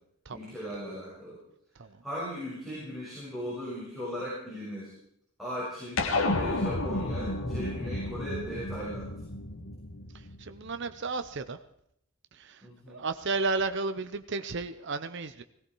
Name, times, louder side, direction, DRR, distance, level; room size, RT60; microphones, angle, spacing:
voice 1, 0.3-1.4 2.0-4.9 5.4-6.0 6.3-9.1 12.6-13.0, equal, ahead, -8 dB, 6.5 m, -38 dB
sound 1, 6.0-10.7, left 2 dB, 70° left, 1.7 m, -31 dB
voice 2, 10.4-11.6 12.3-12.6 12.9-15.4, right 3 dB, 55° right, 9 dB, 0.8 m, -33 dB
17.5 x 17.0 x 4.7 m, 0.72 s
head